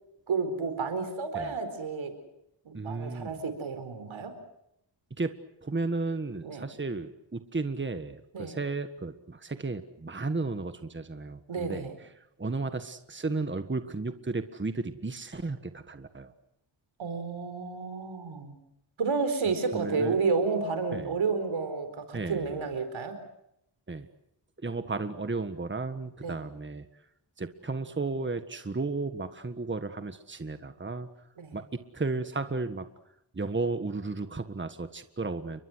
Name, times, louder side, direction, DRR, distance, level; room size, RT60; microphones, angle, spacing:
voice 1, 0.3-2.2 2.6-4.3 6.4-6.6 8.3-8.6 11.5-11.9 17.0-18.6 19.0-23.2 26.2-26.4 31.4-31.6, right 4 dB, 85° right, 8 dB, 4.6 m, -31 dB
voice 2, 2.7-3.4 5.2-5.3 5.6-11.9 12.4-16.3 19.7-20.2 20.9-21.1 22.1-22.5 23.9-24.1 24.6-26.8 27.4-31.1 31.5-32.8 33.3-35.6, right 3 dB, 25° right, 9 dB, 1.6 m, -34 dB
29.5 x 23.5 x 6.4 m, 0.79 s
wide cardioid pair, 75°, 46 cm